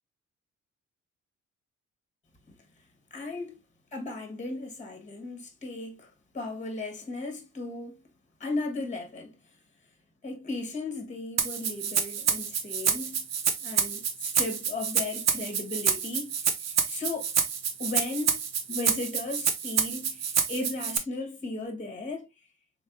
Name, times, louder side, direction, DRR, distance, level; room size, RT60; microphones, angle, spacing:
voice 1, 3.1-3.6 3.9-8.0 8.4-9.4 10.2-13.3 13.6-16.5 16.9-17.3 17.8-22.3, left 2 dB, 25° left, 1.2 m, -36 dB
Rattle (instrument), 11.4-21.0, right 7 dB, 60° right, 0.8 m, -28 dB
3.7 x 3.4 x 2.4 m
cardioid pair, 90°, 30 cm